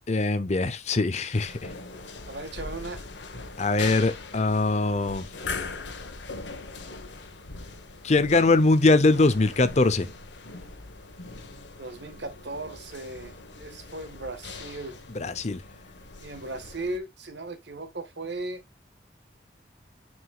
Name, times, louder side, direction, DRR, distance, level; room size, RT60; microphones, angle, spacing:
voice 1, 0.1-1.6 3.6-5.2 8.0-10.1 15.1-15.6, left 3 dB, 35° left, 0.6 m, -22 dB
Queneau Dans couloir calme, 1.3-17.0, left 3 dB, 75° left, 1.2 m, -41 dB
voice 2, 2.3-3.1 11.8-15.0 16.2-18.6, right 2 dB, 70° right, 1.5 m, -37 dB
9.6 x 4.8 x 2.3 m
head